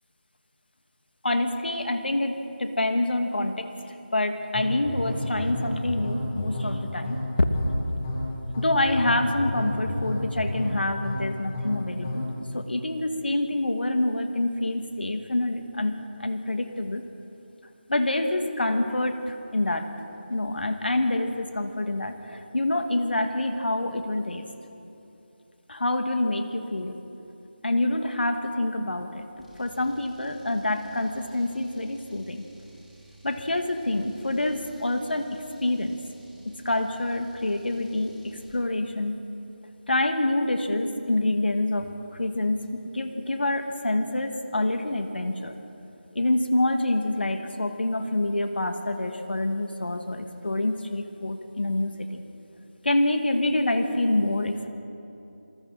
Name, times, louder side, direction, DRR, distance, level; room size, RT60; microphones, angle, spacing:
voice 1, 1.2-3.7 4.1-7.2 8.6-17.0 17.9-19.9 20.3-24.5 25.7-27.0 27.6-29.3 29.6-32.5 33.2-36.0 36.4-39.2 39.9-45.5 46.1-52.2 52.8-54.7, left 1 dB, 70° left, 5 dB, 2.4 m, -27 dB
sound 1, 4.5-12.4, left 1 dB, 20° left, 4.4 m, -31 dB
sound 2, 29.4-38.6, right 2 dB, ahead, 2.6 m, -52 dB
28.0 x 26.5 x 4.3 m, 2.9 s
figure-of-eight pair, 165°, 6 cm